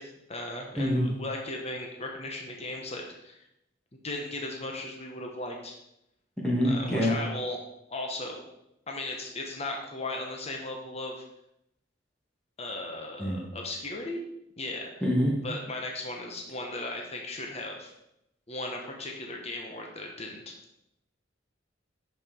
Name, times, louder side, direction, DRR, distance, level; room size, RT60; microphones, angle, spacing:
voice 1, 0.0-3.4 4.0-5.8 6.6-7.6 7.9-8.4 8.9-11.2 12.6-14.2 14.6-14.9 15.4-17.9 18.5-20.6, left 2 dB, 35° left, 1 dB, 1.3 m, -37 dB
voice 2, 0.8-1.1 6.4-7.1 13.2-13.4 15.0-15.4, equal, 5° left, -4 dB, 2.4 m, -25 dB
11.0 x 6.1 x 4.5 m, 0.82 s
head